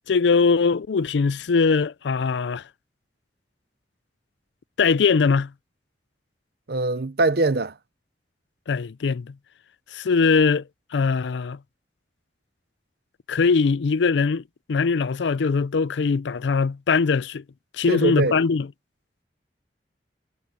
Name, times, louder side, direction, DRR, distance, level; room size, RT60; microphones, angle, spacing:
voice 1, 0.1-2.6 4.8-5.5 8.7-9.3 9.9-10.6 10.9-11.6 13.3-14.4 14.7-17.4 17.7-18.7, left 5 dB, 85° left, 0.4 m, -21 dB
voice 2, 6.7-7.7 17.9-18.3, right 3 dB, 60° right, 0.8 m, -22 dB
head